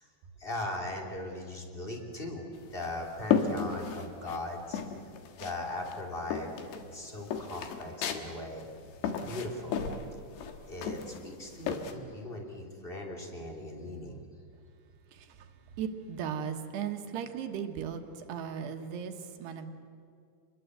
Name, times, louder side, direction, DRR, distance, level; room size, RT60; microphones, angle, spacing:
voice 1, 0.4-4.8 5.4-8.6 9.2-9.8 10.7-14.2, left 1 dB, 15° left, 1 dB, 2.7 m, -39 dB
sound 1, 2.6-4.4 4.7-5.6 5.9-11.9, left 7 dB, 75° left, 3.7 m, -33 dB
voice 2, 15.1-15.5 15.8-19.7, right 7 dB, 75° right, 5 dB, 3.4 m, -37 dB
29.0 x 21.5 x 8.0 m, 2.4 s
omnidirectional pair, 5.0 m